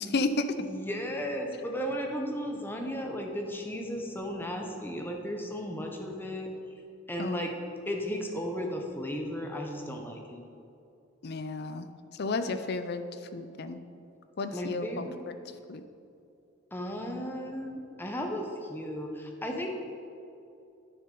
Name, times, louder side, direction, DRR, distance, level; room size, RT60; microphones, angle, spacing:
voice 1, 0.0-0.7 7.2-7.4 11.2-11.9 12.1-13.0 13.3-13.8 14.4-15.4 15.7-15.8, left 3 dB, 55° left, 10 dB, 0.5 m, -32 dB
voice 2, 0.6-6.5 7.1-7.5 7.9-10.5 14.5-15.5 16.7-19.7, equal, 10° left, 2 dB, 0.8 m, -35 dB
9.5 x 6.8 x 3.8 m, 2.6 s
head